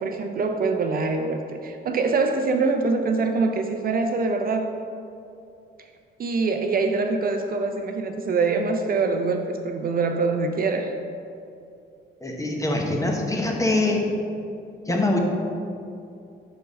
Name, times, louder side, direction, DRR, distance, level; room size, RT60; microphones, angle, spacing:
voice 1, 0.0-4.7 6.2-10.9, right 4 dB, 50° right, 5 dB, 0.5 m, -24 dB
voice 2, 12.2-14.1 14.9-15.2, left 2 dB, 15° left, 1 dB, 0.9 m, -23 dB
5.4 x 4.5 x 5.1 m, 2.5 s
cardioid pair, 90°, 20 cm